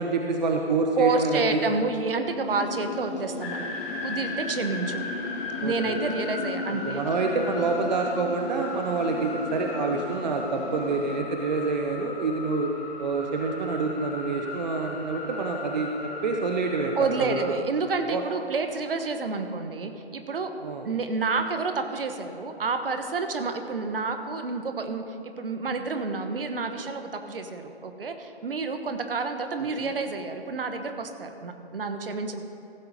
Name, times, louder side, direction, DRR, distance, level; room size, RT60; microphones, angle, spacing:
voice 1, 0.0-1.6 5.6-5.9 6.8-12.7 13.0-17.4 18.1-18.2 20.6-20.9 29.8-29.9, right 3 dB, 45° right, 3 dB, 0.8 m, -27 dB
voice 2, 1.0-3.7 4.0-5.0 5.6-7.0 17.0-20.5 20.8-32.4, right 4 dB, 60° right, 7 dB, 1.2 m, -29 dB
sound 1, 2.5-11.2, left 4 dB, 55° left, 1.0 m, -37 dB
sound 2, 3.4-17.6, left 3 dB, 10° left, 0.6 m, -37 dB
15.0 x 7.8 x 5.1 m, 2.8 s
figure-of-eight pair, 145°, 32 cm